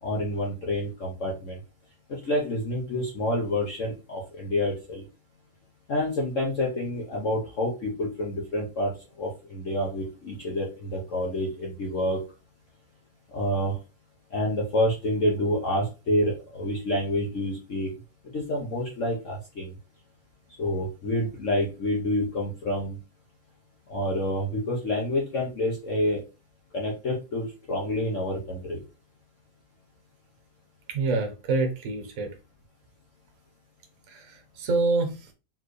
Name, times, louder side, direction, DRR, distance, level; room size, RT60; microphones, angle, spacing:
voice 1, 0.0-1.6 2.1-5.0 5.9-12.2 13.3-13.8 14.3-17.9 18.3-19.7 20.6-23.0 23.9-26.2 26.7-28.8, left 1 dB, 50° left, -3 dB, 1.2 m, -28 dB
voice 2, 30.9-32.3 34.1-35.3, right 3 dB, 50° right, 4 dB, 1.2 m, -27 dB
4.4 x 3.8 x 3.2 m, 0.29 s
omnidirectional pair, 2.1 m